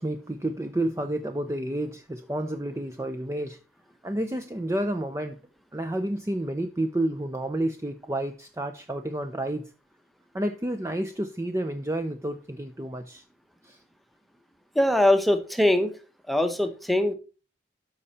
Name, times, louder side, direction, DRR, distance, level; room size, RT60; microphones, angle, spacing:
voice 1, 0.0-3.6 4.0-5.4 5.7-9.7 10.3-13.2 13.6-13.8, right 1 dB, 15° right, 7 dB, 0.5 m, -30 dB
voice 2, 14.7-16.0 16.3-17.1, left 1 dB, ahead, 8 dB, 0.9 m, -22 dB
13.0 x 5.5 x 4.1 m, 0.34 s
head